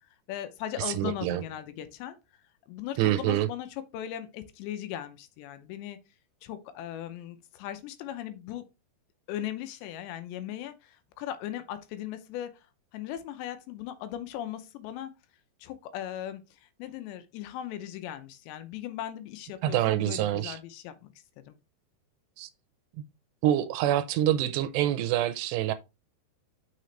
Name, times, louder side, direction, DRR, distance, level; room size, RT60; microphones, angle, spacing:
voice 1, 0.3-2.2 2.7-3.7 3.9-6.0 6.4-8.6 9.3-12.5 12.9-15.1 15.6-21.1 21.5-21.6, left 11 dB, 85° left, 3.0 m, -38 dB
voice 2, 0.8-1.4 3.0-3.5 19.6-20.6 22.4-22.5 23.4-25.7, right 12 dB, 85° right, 2.6 m, -26 dB
6.6 x 6.1 x 3.2 m
omnidirectional pair, 5.0 m